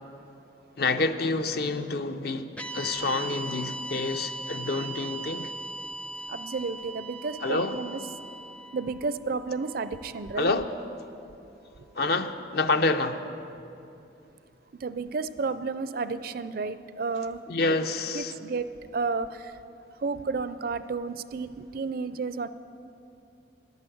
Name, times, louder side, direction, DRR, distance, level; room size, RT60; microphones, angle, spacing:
voice 1, 0.8-5.5 7.4-7.8 10.4-10.7 12.0-13.3 17.5-18.3, left 3 dB, 60° left, 0.6 m, -28 dB
sound 1, 2.6-10.9, right 2 dB, 5° left, 0.4 m, -39 dB
voice 2, 6.3-8.0 8.7-10.5 14.8-17.4 18.1-19.5 20.0-22.5, right 4 dB, 55° right, 0.4 m, -32 dB
11.0 x 10.5 x 7.9 m
head